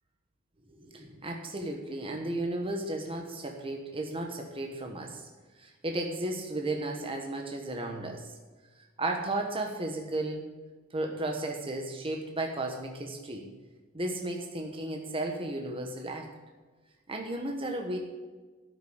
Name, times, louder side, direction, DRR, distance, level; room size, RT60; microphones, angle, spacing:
voice 1, 0.7-5.3 5.6-8.3 9.0-10.5 10.9-13.5 13.9-16.3 17.1-18.0, right 2 dB, 25° right, 2 dB, 1.2 m, -34 dB
12.5 x 6.7 x 8.0 m, 1.3 s
head